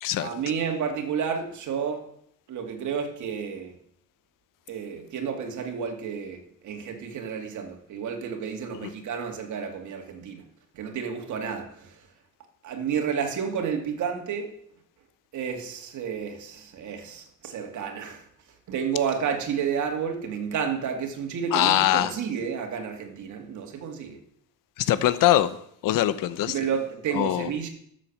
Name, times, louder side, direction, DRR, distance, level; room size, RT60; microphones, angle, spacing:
voice 1, 0.2-2.1 2.5-3.8 4.7-10.4 10.7-11.9 12.6-14.5 15.3-18.2 18.7-24.2 26.5-27.7, right 7 dB, 60° right, 2.5 m, -31 dB
voice 2, 21.5-22.1 24.8-25.6 25.8-26.5 27.1-27.5, left 13 dB, 70° left, 0.9 m, -22 dB
12.5 x 7.6 x 7.3 m
cardioid pair, 135°, 34 cm